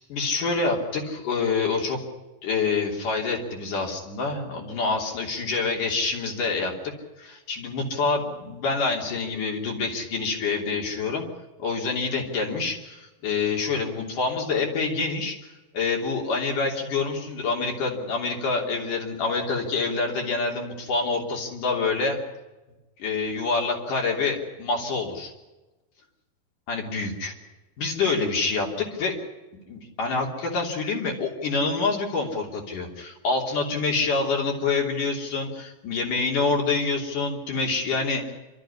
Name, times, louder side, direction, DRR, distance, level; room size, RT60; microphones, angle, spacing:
voice 1, 0.1-2.0 2.4-6.9 7.2-11.2 11.6-22.2 23.0-25.3 26.7-27.3 27.8-29.2 29.7-38.3, left 4 dB, 60° left, 0 dB, 4.7 m, -26 dB
28.0 x 13.0 x 9.9 m, 1.1 s
omnidirectional pair, 4.1 m